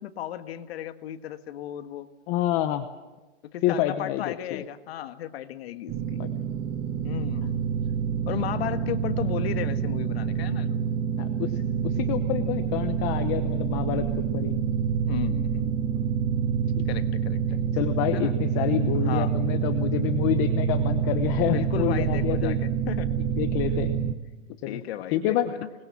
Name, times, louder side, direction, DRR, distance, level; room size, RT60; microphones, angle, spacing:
voice 1, 0.0-2.1 3.4-6.2 7.0-7.6 8.3-10.8 15.1-16.1 16.9-17.6 18.1-18.3 18.9-19.3 21.4-23.2 24.6-25.7, left 11 dB, 55° left, 9 dB, 1.6 m, -35 dB
voice 2, 2.3-2.9 3.6-4.6 6.2-6.3 11.2-14.6 16.8-16.9 17.7-22.6 23.4-23.9 24.6-24.8 25.1-25.5, left 12 dB, 25° left, 9 dB, 0.8 m, -28 dB
sound 1, 5.9-24.1, right 7 dB, 20° right, 0.7 m, -27 dB
26.0 x 21.0 x 7.3 m, 1.2 s
hypercardioid pair, 160°, 37 cm